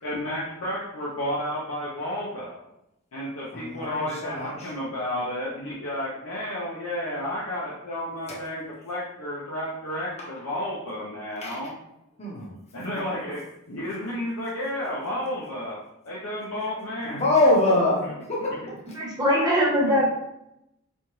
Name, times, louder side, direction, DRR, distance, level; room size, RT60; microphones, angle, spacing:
voice 1, 0.0-2.6 3.1-11.8 12.7-13.4 13.7-15.8 16.1-17.2 18.0-18.1, left 1 dB, 70° left, -6 dB, 0.7 m, -32 dB
voice 2, 3.5-4.7 8.3-8.4 11.4-11.7 12.2-12.5 17.0-18.0 18.3-18.6, left 2 dB, 30° left, -4 dB, 0.9 m, -24 dB
voice 3, 18.9-20.1, equal, 20° right, -4 dB, 1.0 m, -21 dB
4.4 x 2.3 x 3.1 m, 0.84 s
head